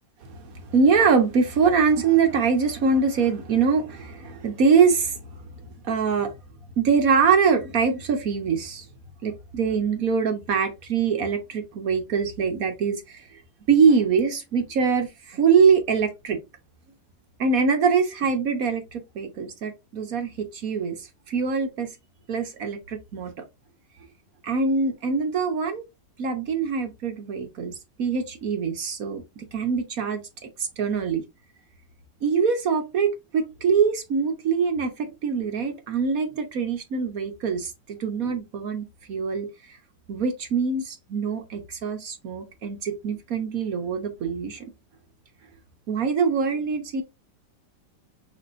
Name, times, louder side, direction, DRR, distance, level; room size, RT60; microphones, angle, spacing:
voice 1, 0.3-5.1 5.9-6.3 6.8-8.8 9.2-13.2 13.7-16.4 17.4-21.0 21.3-21.9 22.3-23.3 24.4-25.8 26.2-27.7 28.0-30.2 30.8-31.2 32.2-39.5 40.1-44.6 45.9-47.0, right 5 dB, 60° right, 1.2 m, -23 dB
6.3 x 3.3 x 2.5 m
omnidirectional pair, 1.9 m